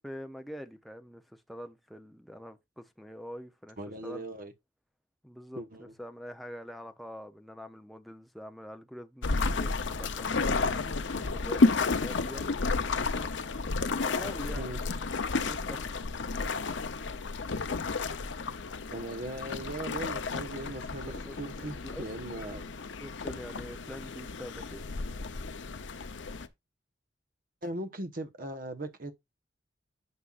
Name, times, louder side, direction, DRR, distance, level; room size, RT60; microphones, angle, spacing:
voice 1, 0.0-4.2 5.2-12.5 14.0-15.0 15.4-15.8 21.2-21.4 21.8-22.1 23.0-24.8, equal, ahead, 0.7 m, -45 dB
voice 2, 3.8-4.5 5.6-5.9 14.5-14.8 18.9-22.6 27.6-29.1, right 1 dB, 50° right, 1.2 m, -39 dB
sound 1, 9.2-26.5, left 3 dB, 80° left, 0.7 m, -32 dB
9.7 x 5.7 x 2.5 m
head